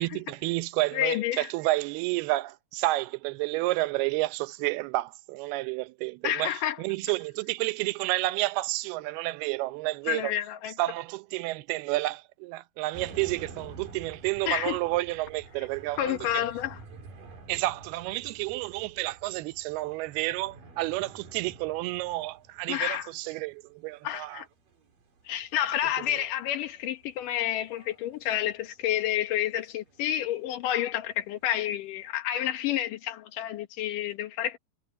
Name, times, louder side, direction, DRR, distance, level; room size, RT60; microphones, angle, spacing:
voice 1, 0.0-10.3 10.8-16.5 17.5-24.4 26.1-26.2, right 19 dB, 85° right, 2.7 m, -30 dB
voice 2, 0.9-1.5 6.2-6.8 10.1-10.7 14.5-14.8 16.0-16.8 22.7-23.1 24.0-24.5 25.3-34.6, left 12 dB, 65° left, 2.6 m, -29 dB
sound 1, 12.9-32.1, right 4 dB, 60° right, 5.6 m, -50 dB
omnidirectional pair, 4.4 m